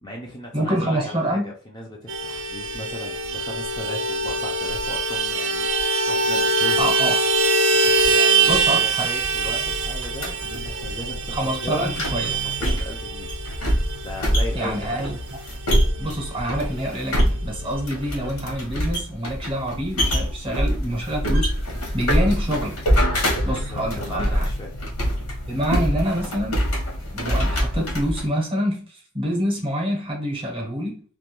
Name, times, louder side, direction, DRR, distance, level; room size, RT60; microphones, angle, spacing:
voice 1, 0.0-5.7 6.1-6.9 7.8-11.4 11.6-11.9 12.3-13.3 14.0-15.0 23.7-24.8, left 1 dB, 20° left, -2 dB, 0.4 m, -36 dB
voice 2, 0.5-1.5 6.8-7.2 8.5-9.1 11.3-12.4 14.5-15.2 16.0-21.5 21.9-22.8 23.4-24.5 25.5-26.6 27.0-31.0, equal, 25° right, -1 dB, 0.8 m, -26 dB
Vehicle horn car horn honking, 2.1-16.0 16.3-16.4 16.7-16.9 17.1-17.8, right 3 dB, 60° right, 0.4 m, -23 dB
sound 1, 9.2-28.3, equal, 80° left, 0.9 m, -25 dB
2.3 x 2.2 x 2.9 m, 0.40 s
head